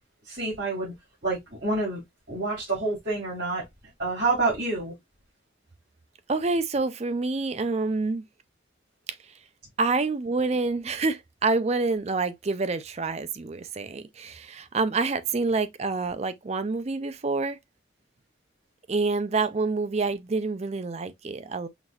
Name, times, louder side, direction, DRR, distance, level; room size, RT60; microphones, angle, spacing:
voice 1, 0.2-0.9 1.2-2.0 2.3-3.6 4.0-4.9, right 3 dB, 60° right, 3.1 m, -27 dB
voice 2, 6.3-8.2 9.8-17.6 18.9-21.7, right 3 dB, 35° right, 0.4 m, -27 dB
5.9 x 2.6 x 2.3 m
head